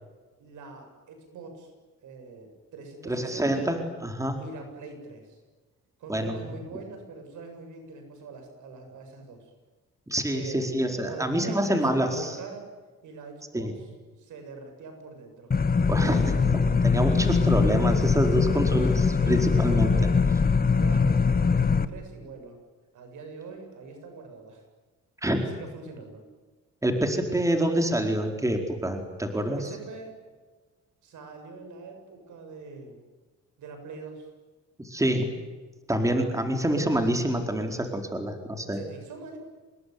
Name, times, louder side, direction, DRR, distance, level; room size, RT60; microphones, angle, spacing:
voice 1, 0.4-1.7 2.0-3.7 4.4-5.4 6.0-9.5 10.3-10.6 11.0-12.7 13.0-13.9 14.2-15.5 18.5-18.6 19.2-20.2 20.8-22.6 22.9-24.6 25.2-26.2 29.4-30.2 31.0-33.0 33.6-34.3 38.7-39.4, right 4 dB, 75° right, 5 dB, 7.7 m, -43 dB
voice 2, 3.0-4.4 6.1-6.4 10.1-12.4 13.5-13.7 15.9-19.9 25.2-25.4 26.8-29.6 34.8-35.3 35.9-38.8, right 1 dB, 10° right, 4 dB, 4.5 m, -26 dB
sound 1, 15.5-21.9, left 5 dB, 30° left, 1.5 m, -22 dB
27.5 x 20.5 x 9.6 m, 1.3 s
cardioid pair, 90°, 30 cm